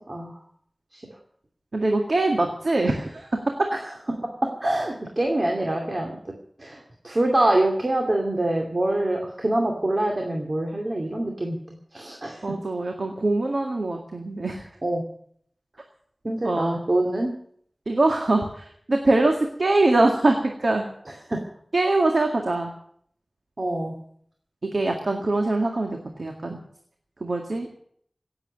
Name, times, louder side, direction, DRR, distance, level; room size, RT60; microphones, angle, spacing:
voice 1, 0.1-0.4 0.9-1.0 4.6-6.2 6.6-11.6 11.9-12.5 14.8-15.0 16.2-17.3 21.3-21.4 23.6-24.0, right 1 dB, 55° right, 1 dB, 2.5 m, -25 dB
voice 2, 1.7-3.7 12.4-14.6 16.4-16.8 17.9-20.8 21.7-22.7 24.6-26.6 27.2-27.7, right 2 dB, 80° right, 3 dB, 1.9 m, -23 dB
17.5 x 8.0 x 9.4 m, 0.64 s
wide cardioid pair, 45°, 0 cm